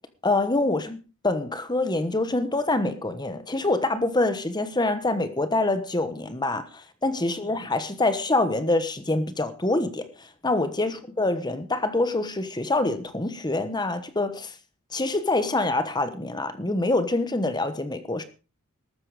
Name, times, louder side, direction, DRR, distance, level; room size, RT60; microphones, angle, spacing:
voice 1, 0.2-1.0 1.2-14.5 14.9-18.2, left 2 dB, 20° left, 1.2 m, -25 dB
13.5 x 13.0 x 4.9 m
head